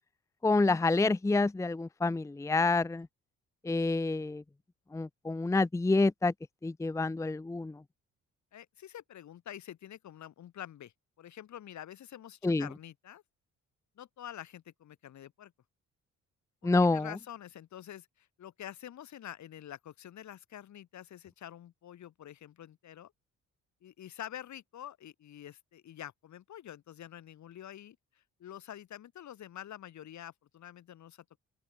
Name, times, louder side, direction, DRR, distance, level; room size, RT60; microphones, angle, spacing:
voice 1, 0.4-3.1 3.6-4.4 4.9-6.3 6.6-7.8 12.4-12.7 16.6-17.1, left 3 dB, 10° left, 0.6 m, -28 dB
voice 2, 8.5-13.2 14.0-15.5 16.8-23.1 23.8-31.4, left 11 dB, 70° left, 4.0 m, -47 dB
open air
cardioid pair, 90°, 30 cm